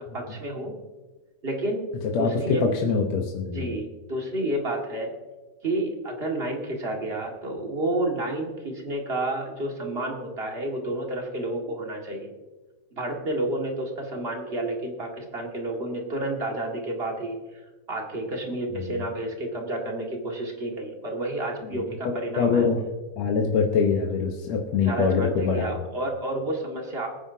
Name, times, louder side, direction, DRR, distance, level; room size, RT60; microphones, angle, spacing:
voice 1, 0.1-0.8 1.4-1.9 2.2-2.7 3.5-5.1 5.6-12.3 12.9-17.6 17.9-22.7 24.8-27.1, right 1 dB, 30° right, 0 dB, 1.2 m, -30 dB
voice 2, 2.1-3.7 18.8-18.9 21.7-22.8 23.2-25.7, left 5 dB, 65° left, 1 dB, 1.8 m, -24 dB
23.5 x 10.0 x 2.8 m, 1.2 s
omnidirectional pair, 4.1 m